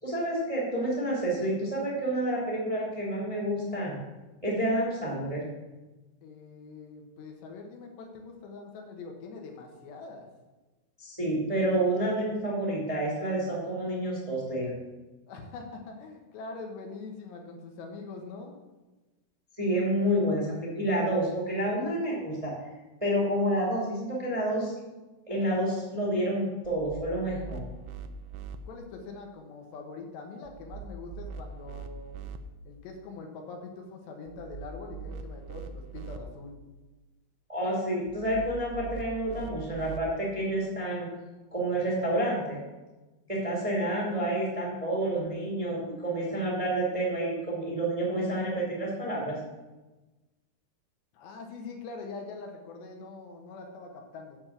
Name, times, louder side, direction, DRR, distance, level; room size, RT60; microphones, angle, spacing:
voice 1, 0.0-4.0 4.4-5.5 11.0-14.7 19.6-22.5 23.0-24.7 25.3-27.6 37.5-41.1 41.5-42.6 43.3-49.4, right 1 dB, 10° right, -4 dB, 1.6 m, -29 dB
voice 2, 6.2-10.3 15.3-18.5 28.7-32.2 32.7-36.6 51.1-54.4, left 4 dB, 80° left, 2 dB, 3.5 m, -43 dB
sound 1, 26.6-28.6 30.5-32.4 34.3-36.2 38.1-40.0, right 5 dB, 80° right, 2.7 m, -42 dB
8.6 x 7.1 x 7.3 m, 1.1 s
omnidirectional pair, 4.9 m